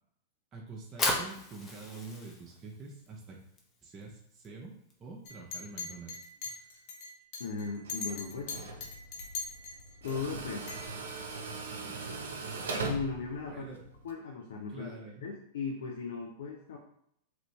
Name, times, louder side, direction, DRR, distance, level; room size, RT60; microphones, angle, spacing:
voice 1, 0.5-3.4 3.8-4.7 5.0-6.7 11.9-12.1 13.5-13.8 14.7-15.3, right 3 dB, 30° right, -2 dB, 0.6 m, -46 dB
Fire, 0.7-6.9, left 2 dB, 30° left, 0.8 m, -38 dB
Chink clink, 5.2-10.1 10.7-10.9, left 5 dB, 50° left, 1.0 m, -40 dB
voice 2, 7.4-8.5 10.0-10.6 12.8-13.7 14.0-14.9 15.2-16.8, left 5 dB, 65° left, 1 dB, 0.5 m, -37 dB
Tools, 7.8-14.1, right 3 dB, 70° right, 0.5 m, -40 dB
3.1 x 2.6 x 3.1 m, 0.74 s
figure-of-eight pair, 100°, 0 cm